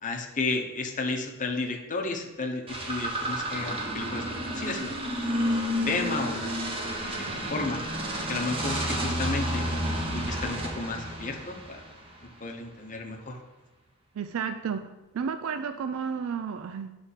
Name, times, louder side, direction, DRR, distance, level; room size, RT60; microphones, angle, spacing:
voice 1, 0.0-4.9 5.3-5.4 5.9-6.5 7.0-7.2 7.5-7.8 8.3-9.6 10.1-11.8 12.2-13.4, left 3 dB, 35° left, 2 dB, 0.8 m, -32 dB
sound 1, 2.7-12.2, equal, 25° right, 1.0 m, -31 dB
voice 2, 14.2-14.9 15.1-16.9, right 6 dB, 65° right, 9 dB, 0.3 m, -32 dB
8.0 x 3.4 x 5.6 m, 1.1 s
head